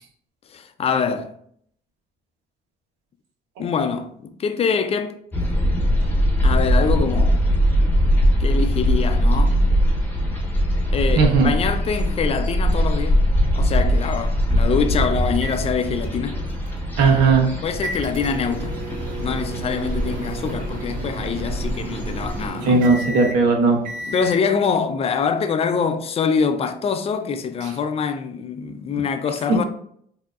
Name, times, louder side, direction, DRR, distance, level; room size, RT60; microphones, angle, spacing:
voice 1, 0.5-1.3 3.6-5.5 6.4-7.4 8.4-9.6 10.9-13.3 13.5-16.4 17.6-18.9 19.2-22.9 24.1-29.6, left 6 dB, 35° left, 0.5 m, -24 dB
sound 1, 5.3-22.5, equal, 10° left, 0.9 m, -21 dB
voice 2, 11.1-11.5 17.0-17.5 22.6-23.8, right 4 dB, 90° right, 1.1 m, -17 dB
sound 2, 15.3-24.5, right 3 dB, 55° right, 0.5 m, -34 dB
4.7 x 2.8 x 2.4 m
cardioid pair, 110°, 17 cm